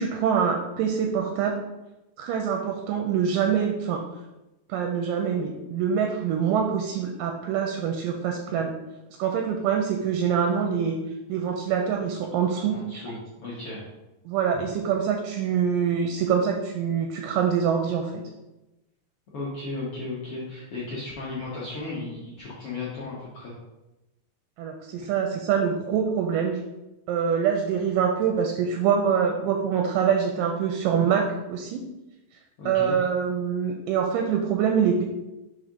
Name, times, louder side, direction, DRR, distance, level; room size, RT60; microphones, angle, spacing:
voice 1, 0.0-1.6 2.2-4.0 4.7-8.7 9.2-11.0 11.3-13.0 14.3-18.2 24.6-26.6 27.1-31.8 32.7-35.0, right 7 dB, 80° right, 3 dB, 2.0 m, -25 dB
voice 2, 12.6-13.2 13.4-13.8 19.3-23.5 25.0-25.1 32.6-33.0, left 3 dB, 85° left, -7 dB, 1.2 m, -35 dB
4.9 x 4.2 x 5.0 m, 1.0 s
omnidirectional pair, 4.3 m